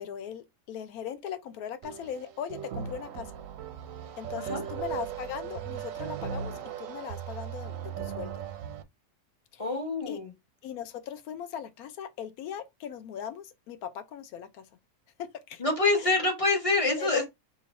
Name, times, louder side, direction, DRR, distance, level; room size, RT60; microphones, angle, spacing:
voice 1, 0.0-3.3 4.2-6.5 6.8-8.4 9.5-9.8 10.1-10.2 10.6-14.7 15.2-15.6 16.0-16.1 17.0-17.2, left 8 dB, 70° left, 1.0 m, -39 dB
sound 1, 1.8-8.8, right 8 dB, 70° right, 0.8 m, -38 dB
voice 2, 9.6-10.3 15.6-17.2, left 3 dB, 30° left, 0.8 m, -26 dB
3.0 x 2.5 x 4.0 m
omnidirectional pair, 1.7 m